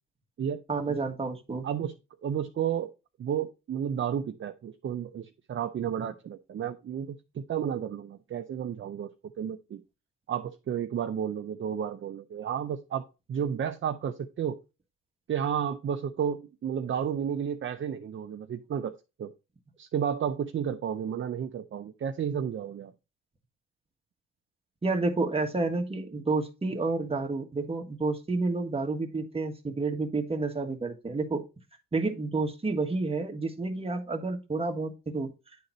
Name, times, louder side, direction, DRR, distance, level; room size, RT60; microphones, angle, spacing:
voice 1, 0.7-1.7 24.8-31.4 31.9-35.3, right 3 dB, 20° right, 3 dB, 1.4 m, -30 dB
voice 2, 2.2-2.9 3.2-9.1 9.4-9.8 10.3-14.6 15.3-18.9 19.2-19.3 19.8-22.9, right 8 dB, 40° right, 7 dB, 0.6 m, -32 dB
9.6 x 3.8 x 4.1 m, 0.28 s
cardioid pair, 90°, 30 cm